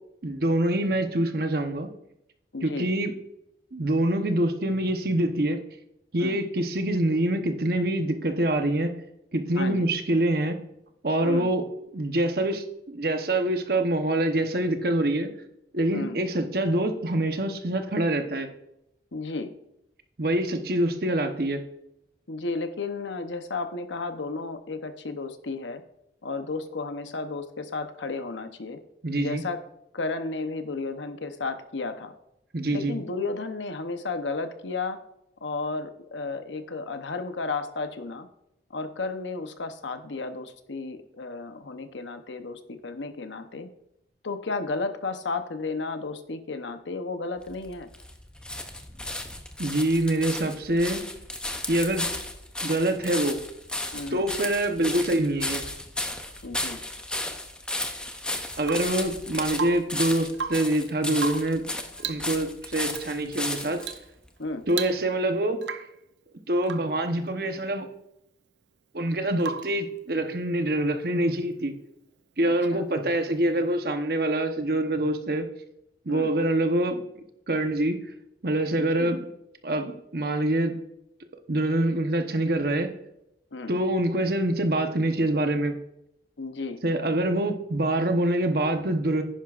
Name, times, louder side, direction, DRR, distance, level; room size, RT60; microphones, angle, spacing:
voice 1, 0.2-1.9 2.6-3.1 3.7-5.6 6.1-9.0 9.3-10.6 11.0-11.6 11.9-15.3 15.7-18.5 20.2-21.6 29.0-29.4 32.5-32.9 49.6-51.0 51.7-52.1 52.6-53.4 54.1-55.6 58.6-61.7 62.0-63.8 64.7-65.6 66.5-67.9 68.9-71.8 72.4-75.5 76.1-77.0 77.5-78.0 78.4-79.2 79.6-80.8 81.5-82.9 83.7-85.8 86.8-89.2, right 1 dB, 55° right, 6 dB, 1.0 m, -25 dB
voice 2, 2.5-2.9 6.2-6.4 9.5-9.8 11.2-11.5 15.9-16.2 19.1-19.5 22.3-25.8 26.2-28.8 29.2-29.6 29.9-32.1 32.7-35.0 35.4-38.3 38.7-43.7 44.2-47.9 53.9-54.3 56.4-56.8 64.4-64.7 72.4-72.9 76.1-76.3 78.7-79.1 83.5-83.8 86.4-86.8, left 3 dB, 90° left, 8 dB, 0.9 m, -33 dB
sound 1, 47.4-64.0 64.7-64.8, left 1 dB, 5° left, 0.7 m, -34 dB
Rain / Water tap faucet / Drip, 58.6-59.0 59.5-60.0 60.3-60.8 61.2-61.6 62.0-62.3 62.9-63.1 63.8-64.1 64.4-64.5 64.7-65.3 65.6-66.0 66.6-67.0 69.4-69.8 71.7-71.8, right 6 dB, 75° right, 0.5 m, -35 dB
10.5 x 10.0 x 2.5 m, 0.81 s
head